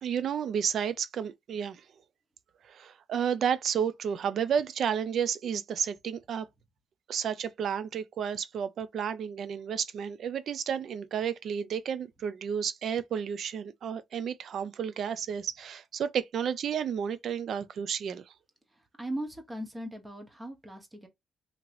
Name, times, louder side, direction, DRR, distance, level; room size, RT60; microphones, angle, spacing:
voice 1, 0.0-1.8 2.6-6.5 7.1-18.2, right 8 dB, 65° right, 0.4 m, -31 dB
voice 2, 18.7-21.1, right 1 dB, 20° right, 1.0 m, -39 dB
2.9 x 2.9 x 2.5 m
cardioid pair, 90°, 0 cm